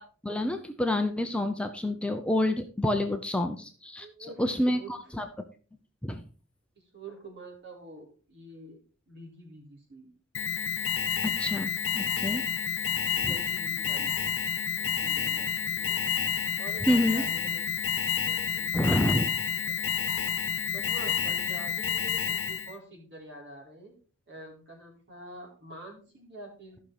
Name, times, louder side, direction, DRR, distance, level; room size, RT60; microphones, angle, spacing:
voice 1, 0.2-4.1 4.4-5.3 6.0-6.2 11.2-12.4 13.2-13.3 16.9-17.2 18.7-19.3, left 1 dB, 5° left, 5 dB, 0.6 m, -28 dB
voice 2, 4.0-4.9 6.8-8.8 9.1-10.1 13.1-14.1 14.7-16.0 16.6-17.7 18.0-18.7 20.0-20.2 20.7-23.9 24.3-26.8, right 2 dB, 55° right, -1 dB, 3.7 m, -47 dB
Alarm, 10.3-22.7, left 7 dB, 65° left, 1.2 m, -29 dB
14.0 x 6.1 x 3.3 m, 0.39 s
head